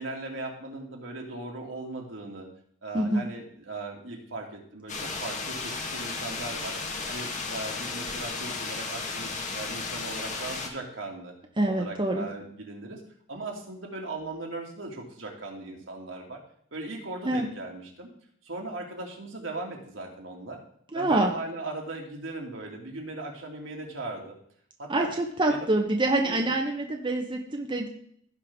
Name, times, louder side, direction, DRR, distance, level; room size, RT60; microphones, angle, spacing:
voice 1, 0.0-2.5 2.8-6.8 7.1-11.3 11.7-13.0 13.3-16.4 16.7-18.1 18.4-20.6 20.9-24.4 24.8-25.1 25.5-25.7 26.2-26.5, right 2 dB, 75° right, 0 dB, 2.3 m, -38 dB
voice 2, 2.9-3.2 11.6-12.3 17.2-17.5 20.9-21.3 24.9-27.9, right 2 dB, 25° right, 2 dB, 0.9 m, -26 dB
sound 1, 4.9-10.7, left 4 dB, 40° left, 1.5 m, -34 dB
16.5 x 5.4 x 3.6 m, 0.64 s
head